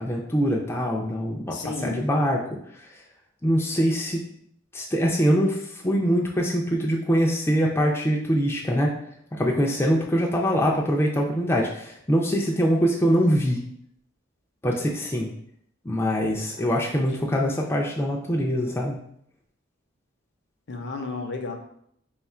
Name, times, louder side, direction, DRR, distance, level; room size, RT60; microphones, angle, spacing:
voice 1, 0.0-2.6 3.4-4.2 4.7-5.6 5.8-8.9 9.4-13.6 14.6-15.3 15.9-19.0, equal, 10° left, -2 dB, 0.4 m, -23 dB
voice 2, 1.5-2.1 16.3-17.3 20.7-21.5, left 3 dB, 55° left, 4 dB, 0.6 m, -35 dB
3.6 x 2.4 x 4.2 m, 0.69 s
head